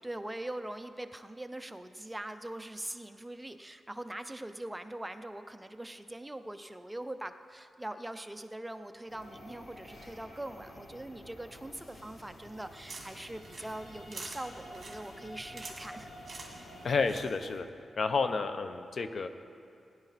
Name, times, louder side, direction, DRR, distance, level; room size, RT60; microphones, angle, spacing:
voice 1, 0.0-16.1 16.5-16.7, right 1 dB, 10° right, 9 dB, 0.5 m, -42 dB
sound 1, 9.1-17.2, equal, 90° left, 2.4 m, -50 dB
sound 2, 12.5-17.6, right 3 dB, 40° right, 2.1 m, -48 dB
voice 2, 16.8-17.7 18.0-19.3, left 4 dB, 55° left, 9 dB, 0.7 m, -30 dB
16.5 x 10.5 x 4.1 m, 2.5 s
cardioid pair, 90°, 0 cm